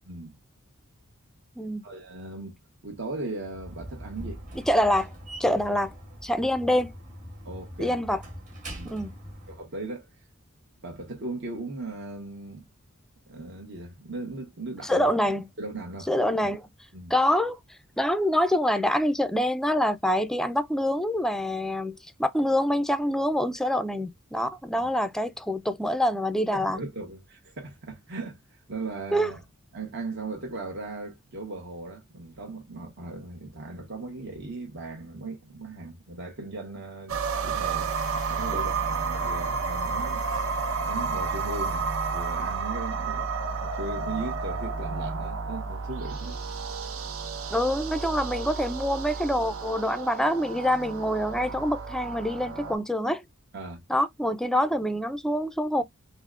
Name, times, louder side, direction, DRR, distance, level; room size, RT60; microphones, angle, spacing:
voice 1, 0.0-0.4 1.8-2.5 2.8-4.4 7.4-8.0 8.7-8.9 9.5-10.1 10.8-12.7 13.3-16.6 16.9-17.1 24.7-24.8 26.5-29.4 29.7-38.0 38.3-40.3 40.9-46.4 53.5-53.8, right 2 dB, 55° right, 1.0 m, -38 dB
Slam, 3.4-9.6, equal, 40° right, 1.9 m, -42 dB
voice 2, 4.7-5.1 5.4-5.9 6.2-6.9 7.8-8.2 8.9-9.1 14.8-15.5 16.1-16.6 17.1-17.6 18.0-26.8 29.1-29.3 47.5-53.2 53.9-55.8, equal, ahead, 0.3 m, -25 dB
sound 1, 37.1-52.7, right 4 dB, 80° right, 0.8 m, -31 dB
5.6 x 2.0 x 2.3 m
head